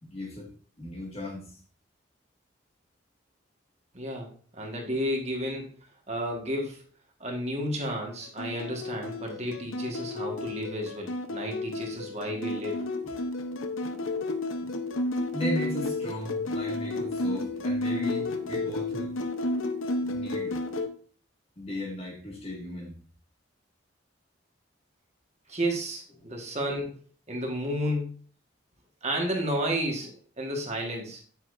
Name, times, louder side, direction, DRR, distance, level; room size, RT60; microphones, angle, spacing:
voice 1, 0.0-0.5 0.8-1.6 15.3-19.1 20.0-20.6 21.6-22.9, left 1 dB, 30° left, 0 dB, 2.0 m, -36 dB
voice 2, 3.9-6.8 7.2-12.8 25.5-27.0 27.3-28.2 29.0-31.2, equal, 35° right, 1 dB, 1.6 m, -32 dB
sound 1, 8.4-20.9, left 2 dB, 90° left, 0.9 m, -32 dB
8.9 x 8.0 x 2.6 m, 0.42 s
head